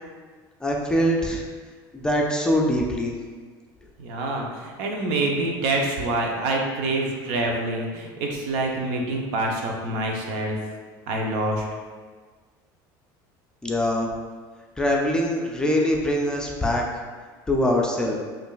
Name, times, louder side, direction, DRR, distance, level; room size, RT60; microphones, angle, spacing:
voice 1, 0.6-1.4 1.9-3.1 13.6-14.1 14.8-16.8 17.5-18.2, equal, 10° left, -1 dB, 0.4 m, -23 dB
voice 2, 4.0-10.6 11.1-11.6, right 2 dB, 75° right, 1 dB, 0.7 m, -26 dB
5.2 x 2.5 x 2.3 m, 1.5 s
cardioid pair, 125°, 10 cm